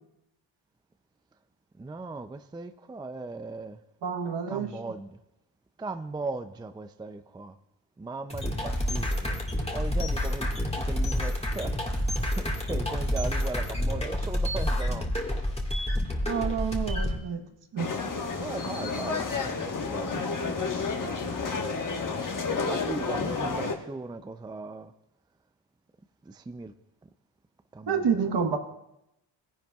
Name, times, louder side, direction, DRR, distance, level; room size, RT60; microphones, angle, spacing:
voice 1, 1.8-3.8 4.5-5.2 5.8-7.5 8.0-9.4 9.7-12.1 12.4-15.4 18.4-20.1 22.6-24.9 26.2-26.7 27.7-28.4, right 3 dB, 10° right, 9 dB, 0.4 m, -38 dB
voice 2, 4.0-4.7 16.2-17.5 17.7-17.9 27.9-28.6, right 6 dB, 60° right, 6 dB, 1.3 m, -28 dB
sound 1, 8.3-17.2, left 1 dB, 10° left, 1.8 m, -28 dB
sound 2, 17.8-23.7, left 4 dB, 40° left, 1.4 m, -30 dB
18.0 x 10.5 x 2.4 m, 0.88 s
cardioid pair, 75°, 49 cm